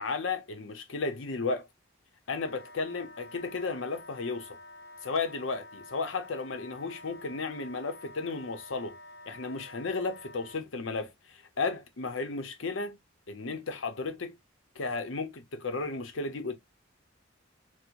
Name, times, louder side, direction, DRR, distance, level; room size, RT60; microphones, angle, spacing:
voice 1, 0.0-1.7 2.3-4.6 5.0-9.0 9.3-13.0 13.3-14.3 14.8-16.6, left 4 dB, 80° left, 0.7 m, -34 dB
Wind instrument woodwind instrument, 2.3-10.6, left 2 dB, 30° left, 1.8 m, -49 dB
4.5 x 2.1 x 2.5 m
head